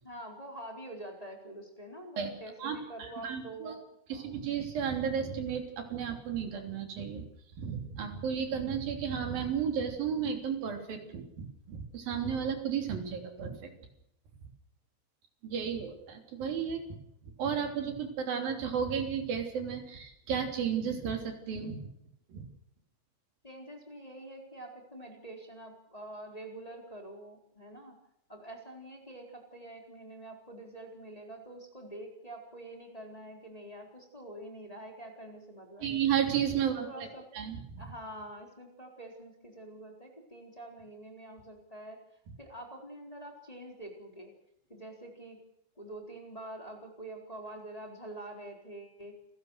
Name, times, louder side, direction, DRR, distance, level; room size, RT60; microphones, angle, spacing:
voice 1, 0.0-3.8 4.1-4.4 23.4-28.0 28.3-36.0 36.7-37.2 37.8-42.0 42.4-44.3 44.7-45.4 45.8-49.1, right 1 dB, 10° left, 1 dB, 3.5 m, -46 dB
voice 2, 2.6-3.8 4.1-7.2 7.6-13.7 15.4-16.8 17.4-21.8 22.3-22.4 35.8-36.9 37.3-37.8, right 7 dB, 50° right, 5 dB, 4.6 m, -33 dB
29.0 x 15.5 x 6.5 m, 0.78 s
omnidirectional pair, 5.8 m